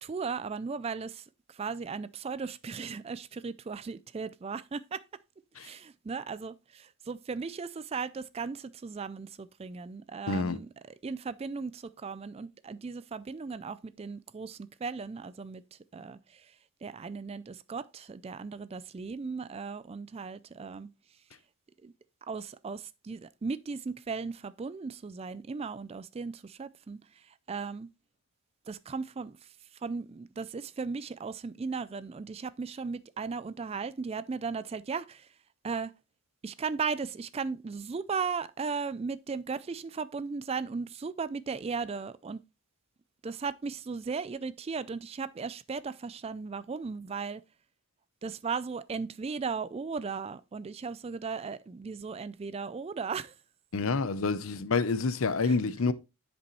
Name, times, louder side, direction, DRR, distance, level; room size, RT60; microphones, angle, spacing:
voice 1, 0.0-5.0 5.6-10.7 11.0-16.5 16.8-20.9 21.8-21.9 22.3-27.9 28.7-29.5 29.8-35.3 35.6-35.9 36.4-42.4 43.2-47.4 48.2-53.3 55.4-55.6, right 5 dB, 25° right, 0.3 m, -37 dB
voice 2, 10.3-10.6 53.7-55.9, left 4 dB, 65° left, 0.6 m, -28 dB
9.8 x 5.3 x 3.0 m
head